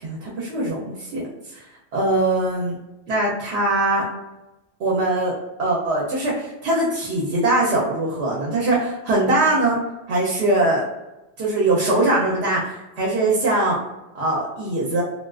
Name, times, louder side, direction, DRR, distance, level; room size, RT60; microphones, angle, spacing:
voice 1, 0.0-1.2 1.5-1.6 1.9-2.8 3.1-4.0 4.8-5.3 5.6-9.8 10.1-10.8 11.4-13.8 14.1-15.0, right 2 dB, 80° right, -4 dB, 0.9 m, -21 dB
2.4 x 2.3 x 2.3 m, 1.0 s
omnidirectional pair, 1.1 m